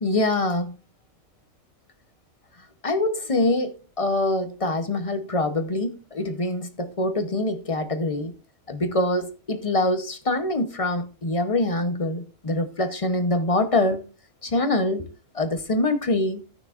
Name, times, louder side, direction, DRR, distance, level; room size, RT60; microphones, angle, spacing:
voice 1, 0.0-0.8 2.8-8.3 8.7-14.0 14.4-15.1 15.3-16.4, left 2 dB, 30° left, 0.7 m, -24 dB
16.5 x 6.2 x 2.4 m
omnidirectional pair, 1.5 m